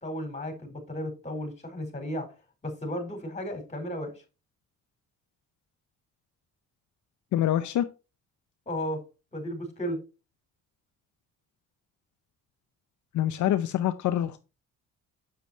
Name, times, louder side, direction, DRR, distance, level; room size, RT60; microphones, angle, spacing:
voice 1, 0.0-2.3 2.6-4.1 8.7-9.0 9.3-10.0, equal, 25° left, 5 dB, 4.4 m, -34 dB
voice 2, 7.3-7.9 13.1-14.4, left 12 dB, 75° left, 9 dB, 0.7 m, -25 dB
8.0 x 7.0 x 4.2 m, 0.30 s
cardioid pair, 90°, 30 cm